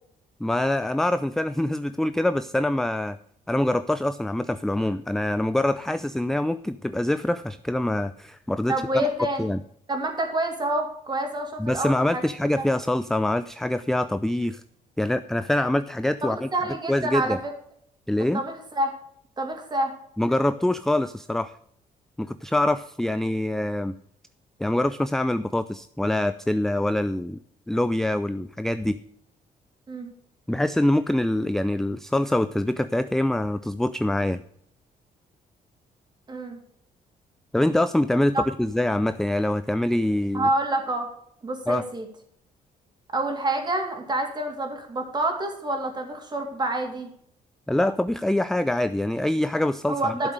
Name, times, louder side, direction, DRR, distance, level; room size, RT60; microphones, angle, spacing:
voice 1, 0.4-3.2 3.5-9.1 9.4-9.6 11.6-14.6 15.0-16.5 16.9-17.4 18.1-18.4 20.2-21.5 22.2-24.0 24.6-27.4 27.7-29.0 30.5-34.4 37.5-40.5 41.7-41.8 47.7-50.3, left 1 dB, 5° left, 13 dB, 0.4 m, -24 dB
voice 2, 8.7-9.5 9.9-12.2 12.6-12.7 16.2-17.5 18.2-18.9 19.4-19.9 29.9-30.1 36.3-36.6 38.3-38.4 40.3-41.1 41.4-42.1 43.1-47.1 49.9-50.3, right 1 dB, 30° right, 3 dB, 3.3 m, -27 dB
12.0 x 7.3 x 6.4 m, 0.68 s
cardioid pair, 125°, 15 cm